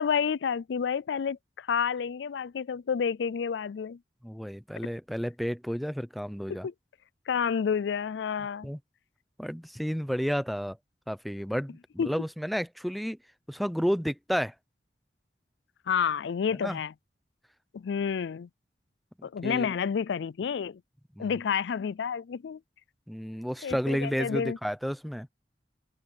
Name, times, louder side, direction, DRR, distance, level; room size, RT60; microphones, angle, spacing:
voice 1, 0.0-4.0 6.6-6.7 7.3-8.7 12.0-12.1 15.9-16.9 17.7-18.5 19.2-20.8 21.2-22.6 23.6-24.6, left 7 dB, 90° left, 0.4 m, -29 dB
voice 2, 4.2-6.7 8.6-8.8 9.4-10.8 11.1-13.2 13.5-14.5 16.6-16.8 19.4-19.7 21.2-21.4 23.1-25.3, equal, ahead, 0.8 m, -31 dB
head